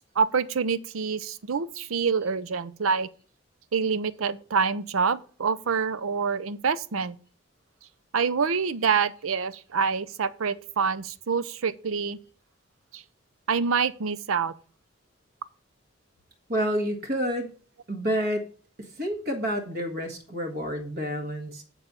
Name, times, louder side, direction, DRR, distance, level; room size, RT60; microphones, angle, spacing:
voice 1, 0.0-3.1 3.7-7.1 8.1-12.2 12.9-13.0 13.5-14.5, right 5 dB, 90° right, 0.6 m, -26 dB
voice 2, 16.5-17.5 17.9-18.5 18.8-21.6, equal, 50° right, 1.6 m, -29 dB
8.9 x 4.1 x 7.3 m
head